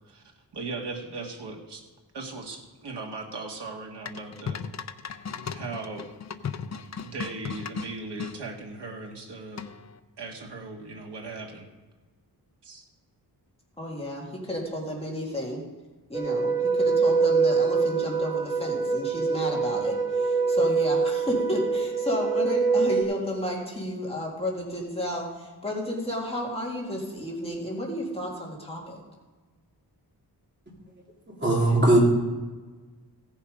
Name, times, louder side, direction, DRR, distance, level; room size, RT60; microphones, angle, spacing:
voice 1, 0.5-1.8 2.1-4.6 5.4-6.1 7.0-9.6 10.2-11.7 12.6-12.8, right 3 dB, 80° right, 1 dB, 1.8 m, -38 dB
sound 1, 4.1-8.4 9.6-10.0, left 6 dB, 45° left, 0.5 m, -36 dB
voice 2, 13.8-15.6 16.1-29.0, equal, 15° left, -3 dB, 2.2 m, -32 dB
sound 2, 16.1-23.0, right 4 dB, 5° right, 1.2 m, -24 dB
voice 3, 31.3-32.0, right 1 dB, 25° right, -4 dB, 3.1 m, -20 dB
16.0 x 7.2 x 5.1 m, 1.3 s
wide cardioid pair, 180°, 41 cm